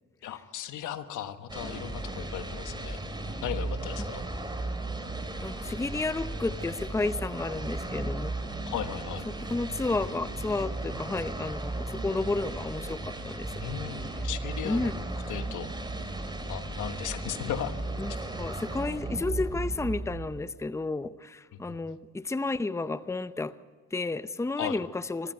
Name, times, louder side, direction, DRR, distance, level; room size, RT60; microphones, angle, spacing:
voice 1, 0.2-3.0 3.4-4.2 8.7-9.2 13.6-14.9 15.3-15.7 16.5-17.7 18.1-18.3 21.7-21.8 24.6-24.8, left 10 dB, 85° left, 9 dB, 1.4 m, -36 dB
sound 1, 1.5-20.5, right 2 dB, 15° right, 3.3 m, -35 dB
voice 2, 5.4-8.3 9.3-13.5 14.6-15.0 18.0-23.5 23.9-25.3, left 3 dB, 10° left, 14 dB, 0.7 m, -32 dB
25.0 x 15.0 x 9.2 m, 1.5 s
cardioid pair, 90°, 30 cm